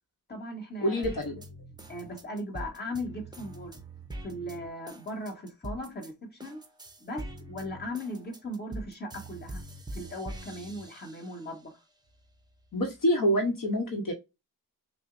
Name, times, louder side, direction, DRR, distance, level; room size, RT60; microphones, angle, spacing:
voice 1, 0.3-1.0 1.9-3.8 4.2-6.6 7.0-9.6 9.9-11.8, left 1 dB, 25° left, 1.2 m, -38 dB
voice 2, 0.8-1.4 12.7-14.1, equal, 60° left, 0.9 m, -27 dB
sound 1, 1.0-6.1 6.4-11.6 12.1-13.0, right 1 dB, 10° right, 0.6 m, -43 dB
5.9 x 2.1 x 2.5 m
wide cardioid pair, 165°, 37 cm